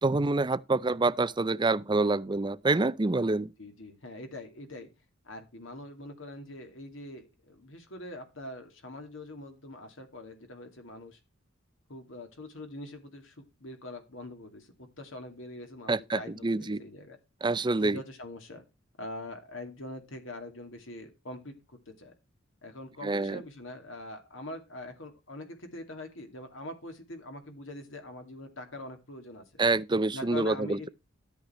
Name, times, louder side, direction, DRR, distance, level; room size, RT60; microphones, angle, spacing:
voice 1, 0.0-3.5 15.9-16.8 17.4-18.0 23.0-23.4 29.6-30.9, right 3 dB, 20° right, 0.5 m, -27 dB
voice 2, 3.6-4.9 5.2-11.2 11.9-17.2 17.8-18.6 19.0-21.5 21.9-22.1 22.6-29.4 30.1-30.9, left 1 dB, 65° left, 2.4 m, -43 dB
13.0 x 6.6 x 4.3 m
head